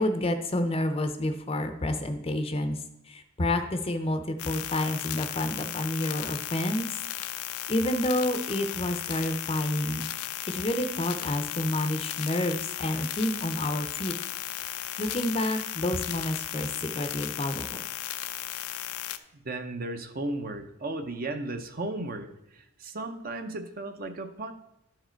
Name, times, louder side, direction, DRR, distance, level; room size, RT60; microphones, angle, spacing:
voice 1, 0.0-2.8 3.1-6.9 7.7-10.1 10.5-14.1 15.0-17.8, left 1 dB, 25° left, 8 dB, 0.6 m, -29 dB
sound 1, 4.4-19.2, left 12 dB, 85° left, 0.5 m, -35 dB
voice 2, 19.3-24.5, right 2 dB, 40° right, 7 dB, 0.6 m, -35 dB
12.0 x 4.8 x 4.4 m, 0.86 s
head